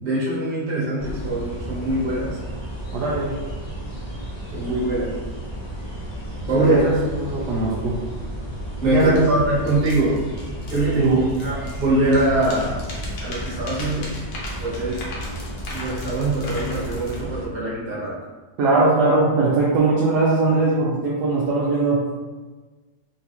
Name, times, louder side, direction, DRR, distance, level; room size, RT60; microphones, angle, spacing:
voice 1, 0.0-2.4 4.5-5.2 6.5-6.9 8.8-10.2 10.7-12.8 13.2-14.1 14.6-15.0 15.7-18.2, right 1 dB, 35° right, -7 dB, 1.0 m, -22 dB
sound 1, 1.0-17.5, equal, 35° left, 0.6 m, -33 dB
voice 2, 2.9-3.4 6.5-8.0 8.9-9.2 11.0-11.2 18.6-22.0, right 3 dB, 70° right, -5 dB, 1.0 m, -20 dB
sound 2, 9.2-9.3 9.7-11.9 12.1-17.2, left 2 dB, 80° left, 1.4 m, -38 dB
3.4 x 2.3 x 2.8 m, 1.3 s
omnidirectional pair, 2.0 m